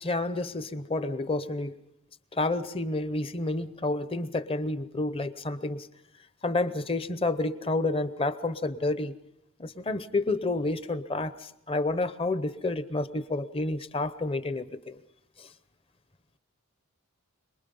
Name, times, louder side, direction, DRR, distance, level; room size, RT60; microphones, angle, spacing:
voice 1, 0.0-1.8 2.3-5.9 6.4-9.1 9.6-15.0 15.4-15.5, left 2 dB, 25° left, 13 dB, 0.8 m, -30 dB
27.0 x 20.5 x 5.4 m, 0.86 s
head